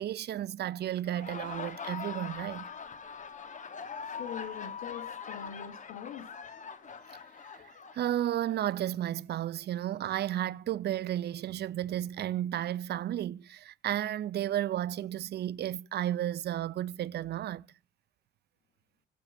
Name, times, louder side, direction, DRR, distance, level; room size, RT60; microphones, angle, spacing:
voice 1, 0.0-2.7 7.9-17.6, right 12 dB, 55° right, 0.5 m, -33 dB
Laughter, 0.9-8.6, left 6 dB, 40° left, 1.2 m, -42 dB
voice 2, 4.1-6.3, left 9 dB, 85° left, 1.3 m, -43 dB
25.0 x 8.5 x 2.6 m
cardioid pair, 90°, 20 cm